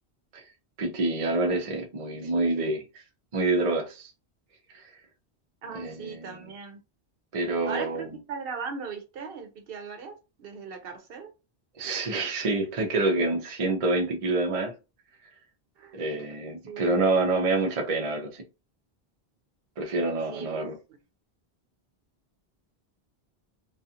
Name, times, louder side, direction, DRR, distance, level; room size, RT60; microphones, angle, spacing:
voice 1, 0.8-2.8 3.3-4.1 4.7-4.9 5.7-6.5 7.3-8.1 11.8-14.7 15.9-18.4 19.8-20.7, right 2 dB, 45° right, 0.5 m, -27 dB
voice 2, 5.6-6.8 7.6-11.3 15.8-16.0 16.7-17.1 20.3-20.6, right 5 dB, 70° right, 0.8 m, -38 dB
2.4 x 2.4 x 2.7 m
omnidirectional pair, 1.0 m